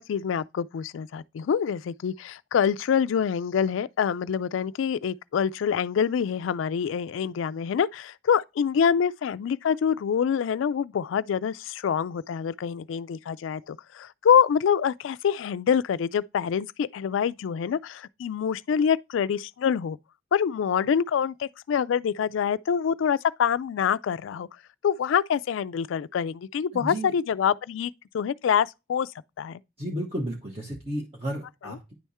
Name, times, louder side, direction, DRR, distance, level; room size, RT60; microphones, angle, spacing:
voice 1, 0.0-20.0 20.3-24.5 24.8-29.1 29.4-29.6, left 7 dB, 90° left, 0.3 m, -26 dB
voice 2, 26.7-27.1 29.8-31.9, right 1 dB, 30° right, 1.3 m, -33 dB
9.8 x 3.5 x 4.2 m
head